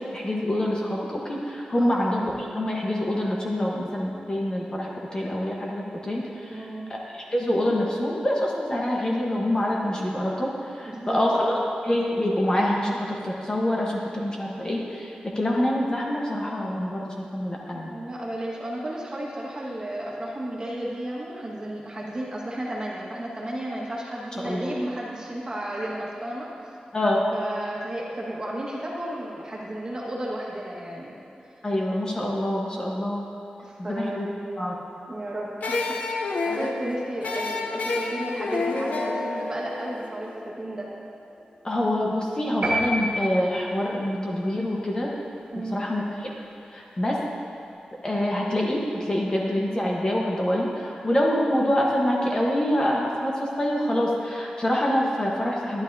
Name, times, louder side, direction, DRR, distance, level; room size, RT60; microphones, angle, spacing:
voice 1, 0.0-6.6 6.9-11.5 11.8-17.9 24.4-24.7 26.9-27.3 31.6-33.3 33.8-34.3 34.6-34.8 41.6-45.1 45.7-46.3 46.7-47.2 48.0-55.8, left 1 dB, 30° left, -3 dB, 1.1 m, -26 dB
voice 2, 6.5-6.8 10.8-11.6 17.7-26.5 27.3-31.1 31.4-31.5 33.6-34.2 35.1-40.9 45.5-45.8, right 1 dB, 30° right, -4 dB, 1.6 m, -33 dB
sound 1, 35.6-40.7, left 3 dB, 85° left, 0.8 m, -29 dB
sound 2, 42.6-43.9, equal, 50° right, 1.6 m, -27 dB
11.5 x 11.0 x 2.7 m, 3.0 s
wide cardioid pair, 115°, 3 cm